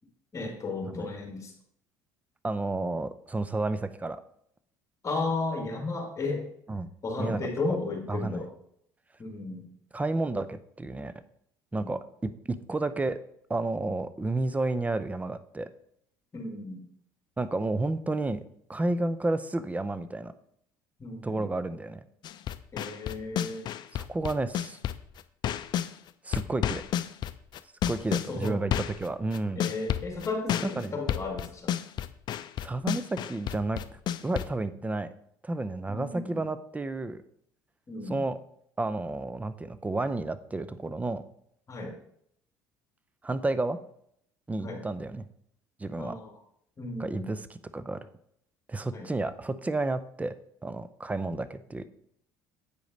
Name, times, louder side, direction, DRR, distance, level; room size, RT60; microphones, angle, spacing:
voice 1, 0.3-1.5 5.0-6.4 7.0-8.5 9.2-9.7 11.7-11.9 16.3-16.9 21.0-21.5 22.7-23.7 28.3-28.6 29.6-31.7 35.9-36.4 37.9-38.2 41.7-42.0 44.6-44.8 46.0-46.3 46.8-47.3 48.9-49.1, left 3 dB, 35° left, 3 dB, 1.8 m, -34 dB
voice 2, 2.4-4.2 6.7-6.9 7.2-7.5 8.1-8.4 9.9-11.2 11.7-13.2 13.5-15.7 17.4-18.4 18.7-20.3 21.2-22.0 23.9-24.8 26.2-26.8 27.9-29.6 30.6-30.9 32.6-35.1 35.4-37.2 38.1-38.4 38.8-41.2 43.2-43.8 44.5-45.3 45.8-46.2 47.0-48.0 48.7-50.4 50.6-51.9, right 2 dB, 15° right, 14 dB, 0.5 m, -31 dB
sound 1, 22.2-25.9 26.3-34.5, left 10 dB, 55° left, 0.4 m, -31 dB
8.3 x 5.0 x 3.9 m, 0.71 s
supercardioid pair, 75°, 9 cm